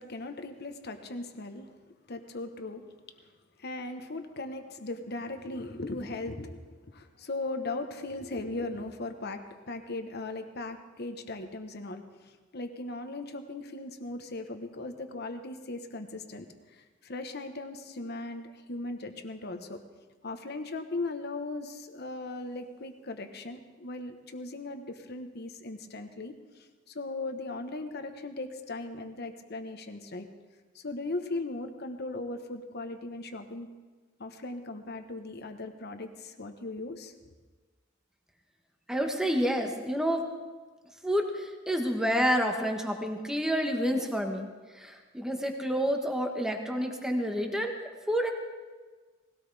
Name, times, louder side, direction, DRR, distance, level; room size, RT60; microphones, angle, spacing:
voice 1, 0.0-1.7 2.1-2.9 3.6-19.8 20.2-30.3 30.7-33.7 34.2-37.1, left 2 dB, 55° left, 7 dB, 1.2 m, -38 dB
voice 2, 38.9-40.2 41.0-47.8 48.1-48.3, equal, 5° right, 3 dB, 1.4 m, -29 dB
19.5 x 17.0 x 3.5 m, 1.4 s
head